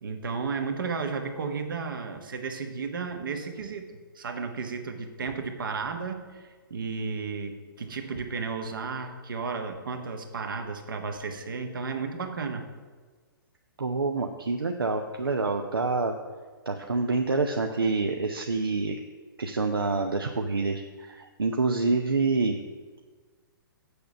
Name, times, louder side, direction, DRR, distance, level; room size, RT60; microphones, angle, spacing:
voice 1, 0.0-12.6, right 5 dB, 65° right, 5 dB, 1.4 m, -33 dB
voice 2, 13.8-16.1 16.7-19.0 19.4-22.6, right 3 dB, 85° right, 4 dB, 0.7 m, -27 dB
6.9 x 6.5 x 7.6 m, 1.4 s
figure-of-eight pair, 125°, 12 cm